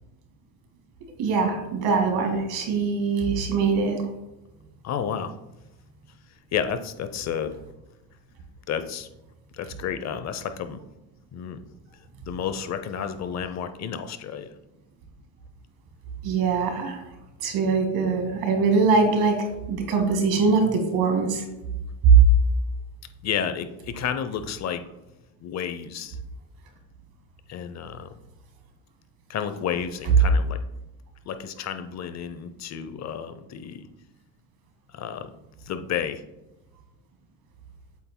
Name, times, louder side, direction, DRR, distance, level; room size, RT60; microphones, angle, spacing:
voice 1, 1.2-4.1 16.2-17.0 17.4-19.4 19.7-21.4 22.0-22.2, right 5 dB, 65° right, 3 dB, 2.0 m, -22 dB
voice 2, 4.8-5.3 6.5-7.5 8.7-9.1 9.5-10.8 11.3-11.6 12.2-14.5 23.2-24.8 25.4-26.2 27.5-28.1 29.3-30.6 31.3-33.9 34.9-35.3 35.7-36.2, left 8 dB, 40° left, 10 dB, 0.7 m, -31 dB
8.2 x 7.9 x 2.2 m, 0.97 s
cardioid pair, 115°, 40 cm